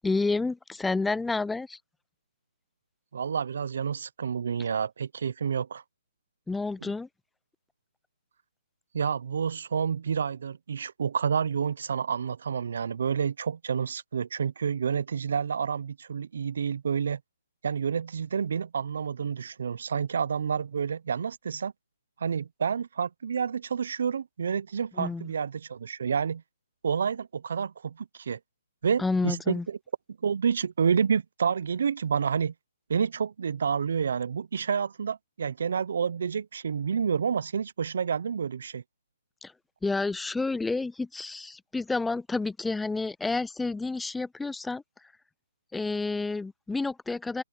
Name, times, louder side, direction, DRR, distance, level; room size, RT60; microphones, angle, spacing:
voice 1, 0.0-1.8 6.5-7.1 25.0-25.3 29.0-29.7 39.4-39.5 39.8-44.8 45.7-47.4, left 3 dB, 5° left, 0.3 m, -29 dB
voice 2, 3.1-5.8 6.8-6.9 8.9-17.2 17.6-21.7 22.2-26.4 26.8-28.4 28.8-29.8 30.2-32.5 32.9-38.8, right 6 dB, 60° right, 0.5 m, -29 dB
open air
hypercardioid pair, 165°, 0 cm